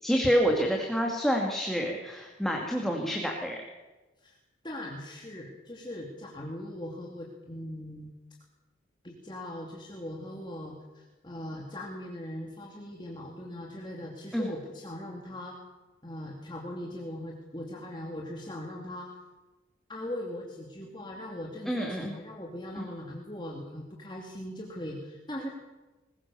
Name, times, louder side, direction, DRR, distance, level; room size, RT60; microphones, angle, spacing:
voice 1, 0.0-3.6 14.3-14.5 21.7-22.1 22.8-22.9, equal, ahead, 0 dB, 2.2 m, -28 dB
voice 2, 4.6-8.1 9.0-15.6 16.0-19.2 19.9-25.5, left 1 dB, 20° left, -1 dB, 2.5 m, -40 dB
21.5 x 20.0 x 7.0 m, 1.2 s
head